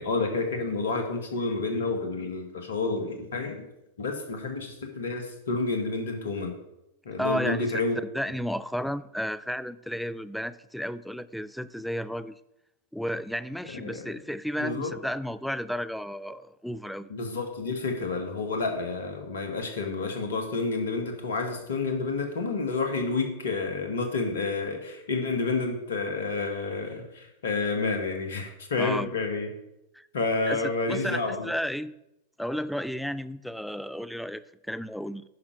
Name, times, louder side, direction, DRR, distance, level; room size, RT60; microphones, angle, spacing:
voice 1, 0.0-3.7 4.0-6.6 7.1-8.0 13.7-14.0 14.6-14.9 17.1-29.5 30.1-31.5, left 3 dB, 65° left, 5 dB, 1.7 m, -29 dB
voice 2, 7.2-7.8 8.1-12.4 12.9-17.1 28.8-29.1 29.9-30.1 30.5-31.9 32.4-35.2, equal, ahead, 14 dB, 0.4 m, -33 dB
10.5 x 5.7 x 4.8 m, 0.88 s
figure-of-eight pair, 90°, 0 cm